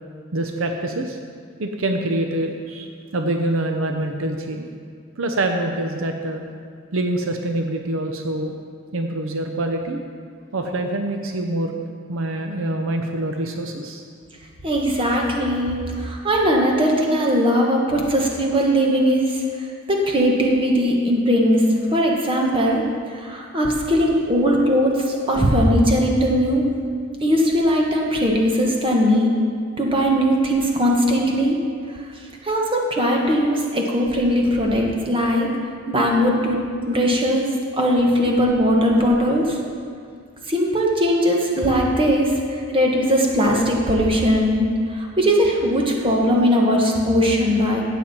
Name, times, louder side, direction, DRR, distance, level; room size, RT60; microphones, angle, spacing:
voice 1, 0.3-1.2 1.6-2.9 3.1-4.7 5.2-6.4 6.9-8.6 8.9-10.0 10.5-11.8 12.1-14.0, right 1 dB, 70° right, 4 dB, 0.7 m, -25 dB
voice 2, 14.6-19.4 19.9-21.6 21.9-22.8 23.2-26.7 27.2-29.3 29.8-31.6 32.4-35.5 35.9-36.6 36.9-37.4 37.7-39.6 40.5-42.3 42.7-47.8, equal, 25° right, -1 dB, 1.4 m, -19 dB
17.0 x 7.3 x 4.3 m, 2.1 s
head